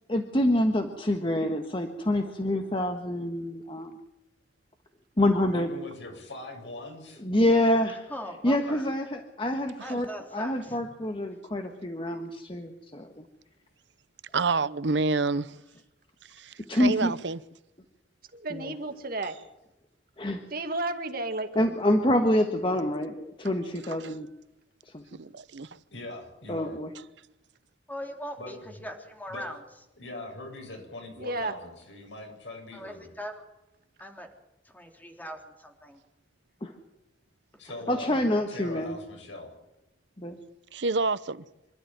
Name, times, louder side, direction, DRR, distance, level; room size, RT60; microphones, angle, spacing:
voice 1, 0.1-3.9 5.2-5.7 7.2-8.1 8.4-13.2 16.7-17.1 18.5-18.7 20.2-20.4 21.5-24.3 24.9-25.2 26.5-26.9 36.6-36.7 37.9-39.0 40.2-40.4, left 1 dB, 30° left, 1.5 m, -27 dB
voice 2, 5.5-7.2 25.9-26.8 28.4-28.8 29.3-29.5 30.0-33.1 37.6-38.1 38.5-39.5, left 2 dB, 75° left, 7.9 m, -41 dB
voice 3, 8.1-8.9 9.8-10.8 15.2-15.4 27.9-29.6 32.7-33.4 34.0-34.3 34.7-36.0 37.9-38.0, equal, 10° left, 3.3 m, -40 dB
voice 4, 14.3-15.5 16.4-17.4 25.1-25.7 40.7-41.4, right 3 dB, 70° right, 0.8 m, -28 dB
voice 5, 18.3-19.4 20.5-21.7 31.2-31.5, right 2 dB, 55° right, 2.1 m, -32 dB
26.0 x 12.5 x 9.2 m
head